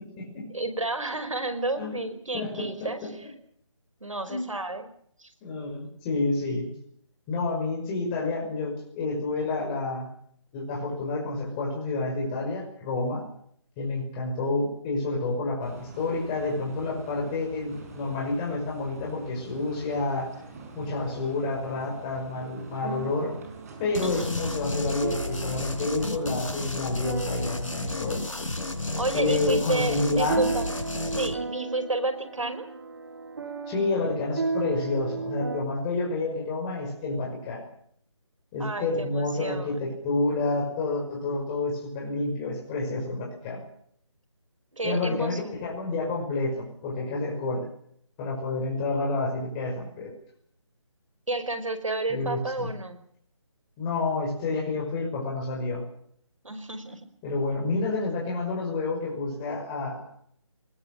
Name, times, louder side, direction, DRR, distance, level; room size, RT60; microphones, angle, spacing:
voice 1, 0.5-3.3 4.0-4.9 5.2-5.3 24.0-24.3 29.0-30.7 31.1-32.6 38.6-39.8 44.7-45.6 51.3-53.0 56.4-57.0, right 2 dB, 85° right, 10 dB, 5.0 m, -31 dB
voice 2, 2.3-3.3 4.3-4.5 5.4-6.7 7.3-10.1 10.5-13.2 13.8-20.3 20.7-23.4 23.8-28.2 29.1-30.5 33.7-37.7 38.5-43.6 44.8-47.7 48.2-50.1 52.1-52.7 53.8-55.8 57.2-60.1, left 3 dB, 15° left, -2 dB, 5.7 m, -29 dB
sound 1, 15.6-25.8, right 3 dB, 30° right, 6.5 m, -46 dB
sound 2, 22.6-35.6, right 4 dB, 50° right, 2.5 m, -36 dB
sound 3, 23.9-31.3, left 2 dB, 85° left, 5.3 m, -32 dB
23.0 x 20.5 x 7.5 m, 0.65 s
figure-of-eight pair, 165°, 16 cm